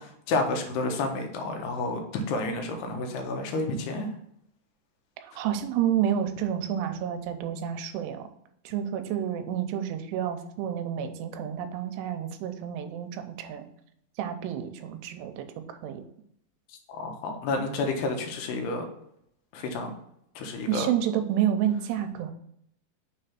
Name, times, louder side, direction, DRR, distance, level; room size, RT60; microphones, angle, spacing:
voice 1, 0.0-4.1 16.9-18.9 19.5-19.9 20.4-20.9, left 2 dB, 80° left, 4 dB, 2.8 m, -30 dB
voice 2, 5.2-8.3 8.7-13.6 14.2-16.0 20.7-22.3, right 10 dB, 85° right, 8 dB, 2.8 m, -29 dB
6.4 x 3.3 x 5.6 m, 0.73 s
omnidirectional pair, 4.8 m